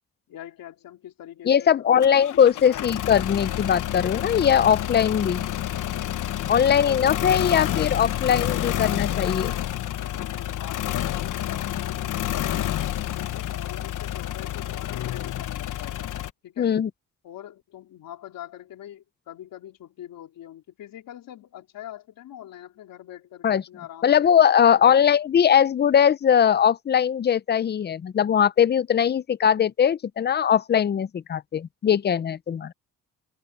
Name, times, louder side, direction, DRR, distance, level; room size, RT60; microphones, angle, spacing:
voice 1, 0.3-2.8 6.5-8.0 10.2-12.6 13.1-16.0 16.4-16.7 17.2-24.3 24.8-25.2, left 12 dB, 80° left, 3.9 m, -43 dB
voice 2, 1.5-5.5 6.5-9.5 16.6-16.9 23.4-23.6 24.0-32.7, left 8 dB, 30° left, 0.5 m, -20 dB
sound 1, 2.0-16.3, left 12 dB, 65° left, 1.0 m, -29 dB
cardioid pair, 120°, 34 cm